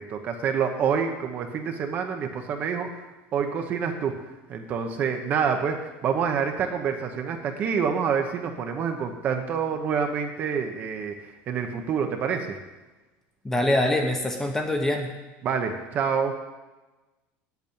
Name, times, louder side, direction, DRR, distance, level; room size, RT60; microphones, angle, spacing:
voice 1, 0.0-2.9 3.3-4.2 4.5-11.1 11.5-12.6 15.4-16.4, right 6 dB, 30° right, 5 dB, 0.9 m, -27 dB
voice 2, 13.4-15.1, left 1 dB, 5° left, 4 dB, 0.9 m, -24 dB
8.2 x 7.9 x 8.7 m, 1.1 s
cardioid pair, 180°, 6 cm